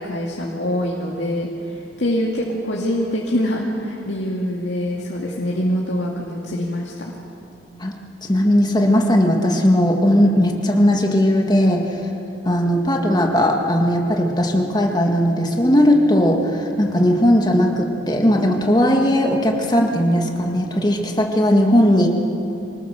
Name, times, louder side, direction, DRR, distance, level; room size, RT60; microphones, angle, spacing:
voice 1, 0.0-7.2, equal, 80° left, -3 dB, 2.2 m, -24 dB
voice 2, 8.3-11.9 12.4-22.1, equal, 25° left, 1 dB, 2.0 m, -17 dB
25.0 x 19.0 x 6.7 m, 2.7 s
head